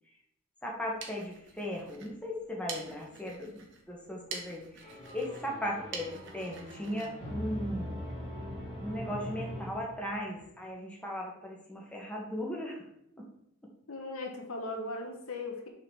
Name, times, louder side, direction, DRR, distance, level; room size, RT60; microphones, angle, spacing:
voice 1, 0.6-3.6 3.9-8.1 8.8-12.8, left 1 dB, 5° left, -2 dB, 1.3 m, -37 dB
sound 1, 0.7-8.2, right 5 dB, 55° right, 1.2 m, -47 dB
sound 2, 4.8-10.4, equal, 30° left, 2.9 m, -41 dB
voice 2, 13.9-15.7, left 2 dB, 75° left, 3 dB, 1.4 m, -38 dB
6.4 x 4.0 x 6.2 m, 0.79 s
head